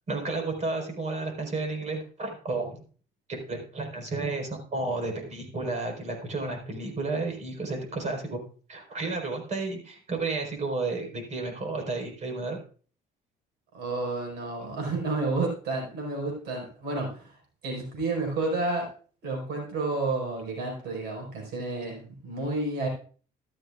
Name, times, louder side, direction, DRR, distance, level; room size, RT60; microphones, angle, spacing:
voice 1, 0.1-2.8 3.3-8.4 8.7-12.6, right 3 dB, 45° right, 3 dB, 4.4 m, -32 dB
voice 2, 13.7-17.3 17.6-18.9 19.2-22.9, right 3 dB, 80° right, 1 dB, 4.9 m, -30 dB
15.0 x 12.5 x 2.4 m, 0.41 s
cardioid pair, 110°, 17 cm